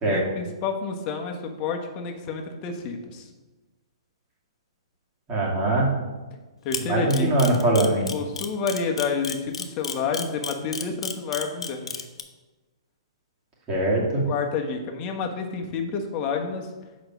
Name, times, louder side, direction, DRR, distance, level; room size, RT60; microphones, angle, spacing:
voice 1, 0.0-3.3 6.6-7.6 8.1-12.0 14.2-16.7, left 5 dB, 30° left, 2 dB, 1.2 m, -29 dB
voice 2, 5.3-5.9 6.9-8.1 13.7-14.2, right 1 dB, 25° right, -4 dB, 2.4 m, -22 dB
Camera, 6.7-12.2, left 6 dB, 85° left, 0.9 m, -31 dB
6.4 x 5.2 x 6.0 m, 1.2 s
hypercardioid pair, 140°, 3 cm